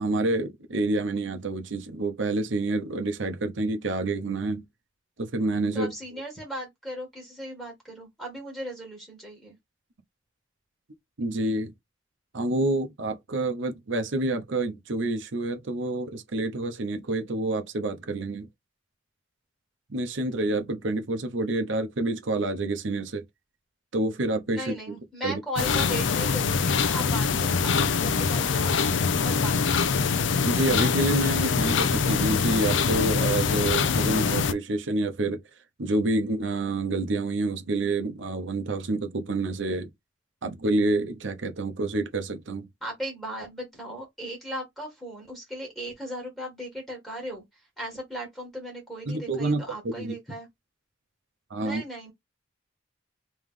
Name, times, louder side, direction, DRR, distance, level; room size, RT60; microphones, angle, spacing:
voice 1, 0.0-4.6 5.2-5.9 11.2-11.7 12.3-18.5 19.9-23.2 23.9-24.7 25.2-25.4 30.4-35.4 35.8-39.9 40.4-42.7 49.1-50.1 51.5-51.8, right 2 dB, 75° right, 0.8 m, -28 dB
voice 2, 5.7-9.6 24.5-28.7 29.2-29.9 42.8-50.5 51.6-52.1, right 1 dB, ahead, 1.7 m, -37 dB
sound 1, 25.6-34.5, left 5 dB, 70° left, 0.5 m, -24 dB
3.3 x 3.1 x 3.6 m
head